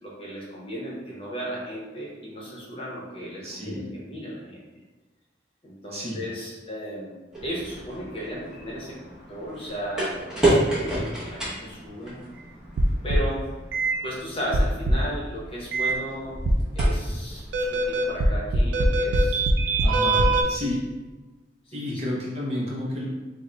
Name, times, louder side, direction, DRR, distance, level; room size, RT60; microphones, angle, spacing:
voice 1, 0.0-4.6 5.6-7.2 7.4-10.1 10.4-12.2 13.0-13.5 14.0-16.3 16.7-19.4 20.4-20.7 21.7-22.0, equal, 30° left, -5 dB, 0.8 m, -35 dB
voice 2, 3.4-3.8 5.9-6.2 19.8-20.8 21.7-23.1, left 1 dB, 35° right, -4 dB, 0.7 m, -31 dB
sound 1, 7.3-18.2, right 1 dB, 5° right, 0.8 m, -31 dB
sound 2, 12.8-13.4 13.7-13.9 14.5-15.1 15.7-15.9 16.4-17.0 17.5-20.4, right 1 dB, 75° right, 0.4 m, -22 dB
3.6 x 2.1 x 3.8 m, 1.2 s
head